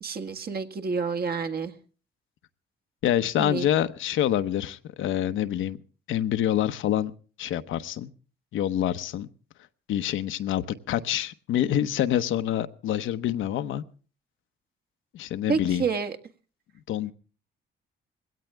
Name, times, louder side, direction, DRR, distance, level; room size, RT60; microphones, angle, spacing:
voice 1, 0.0-1.7 3.4-3.7 15.5-16.2, right 5 dB, 50° right, 1.9 m, -29 dB
voice 2, 3.0-5.8 6.1-7.1 7.4-8.1 8.5-9.3 9.9-13.8 15.1-15.8 16.9-17.1, left 11 dB, 80° left, 1.0 m, -26 dB
20.5 x 17.0 x 3.4 m
cardioid pair, 90°, 20 cm